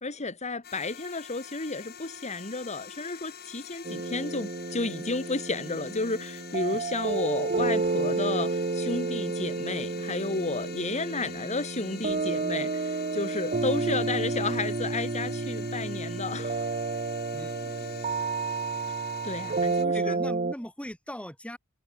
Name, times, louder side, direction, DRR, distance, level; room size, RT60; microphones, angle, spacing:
voice 1, 0.0-16.7 19.2-20.2, left 3 dB, 30° left, 2.0 m, -32 dB
sound 1, 0.6-19.8, left 8 dB, 45° left, 4.8 m, -46 dB
sound 2, 3.8-20.5, right 3 dB, 35° right, 1.0 m, -31 dB
voice 2, 17.3-18.0 19.4-19.5 19.9-21.6, equal, 5° left, 3.1 m, -40 dB
head